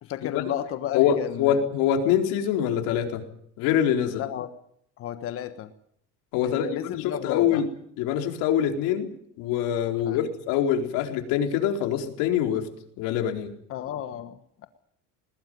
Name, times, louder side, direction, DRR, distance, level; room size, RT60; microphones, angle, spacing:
voice 1, 0.0-1.6 4.1-4.5 5.0-5.7 6.4-7.6 9.9-10.3 13.7-14.7, left 10 dB, 45° left, 9 dB, 1.4 m, -33 dB
voice 2, 0.9-3.2 3.6-4.2 6.3-7.7 8.0-9.1 9.4-12.7 13.0-13.5, left 9 dB, 70° left, 3 dB, 4.4 m, -24 dB
20.5 x 20.5 x 9.4 m, 0.68 s
cardioid pair, 155°, 32 cm